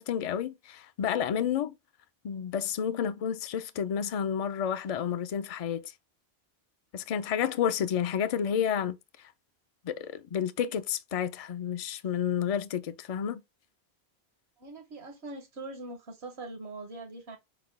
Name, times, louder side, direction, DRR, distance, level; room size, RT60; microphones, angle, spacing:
voice 1, 0.0-1.8 2.2-5.9 6.9-9.3 9.8-13.4, left 8 dB, 55° left, 0.4 m, -30 dB
voice 2, 14.6-17.4, right 2 dB, 80° right, 1.4 m, -42 dB
6.0 x 2.2 x 3.1 m
omnidirectional pair, 1.1 m